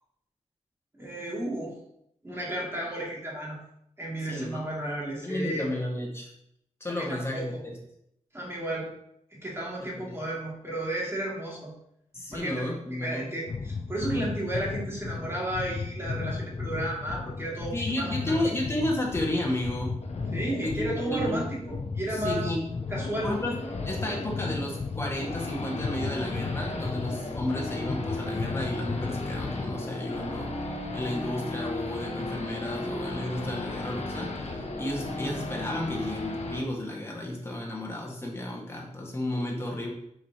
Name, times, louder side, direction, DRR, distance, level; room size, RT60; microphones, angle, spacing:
voice 1, 0.9-1.8 2.2-3.6 4.0-5.7 6.9-7.6 8.3-8.9 9.4-11.7 12.3-18.3 20.3-22.5 22.9-23.3, right 1 dB, 20° right, -4 dB, 2.5 m, -33 dB
voice 2, 4.3-4.7 5.2-6.3 6.8-7.8 9.8-10.2 12.1-13.3 17.7-20.0 20.6-21.4 22.1-22.6 23.2-23.6 23.8-30.5 30.9-39.9, left 1 dB, 20° left, -3 dB, 1.7 m, -32 dB
sound 1, 13.5-29.9, left 4 dB, 40° left, 0.4 m, -35 dB
Race car auto racing / Idling / Accelerating revving vroom, 20.0-36.6, left 2 dB, 60° left, 1.1 m, -36 dB
9.4 x 5.0 x 2.9 m, 0.75 s
wide cardioid pair, 95°, 13 cm